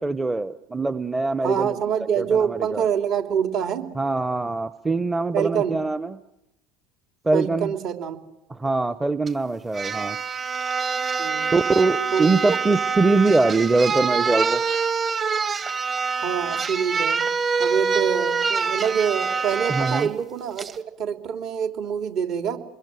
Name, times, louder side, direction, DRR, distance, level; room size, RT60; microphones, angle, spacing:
voice 1, 0.0-1.8 2.2-2.8 4.0-6.2 7.2-7.7 8.5-10.2 11.5-14.6 19.7-20.1, right 3 dB, 15° right, 13 dB, 0.9 m, -23 dB
voice 2, 1.4-3.9 5.3-5.8 7.3-8.2 11.2-11.5 12.1-12.6 16.1-17.2 17.6-20.7 21.0-22.6, right 8 dB, 55° right, 5 dB, 3.2 m, -25 dB
sound 1, 9.3-9.4 9.7-20.1 20.6-20.8, right 5 dB, 30° right, 1.7 m, -25 dB
28.0 x 22.0 x 7.7 m, 0.89 s
hypercardioid pair, 75°, 0 cm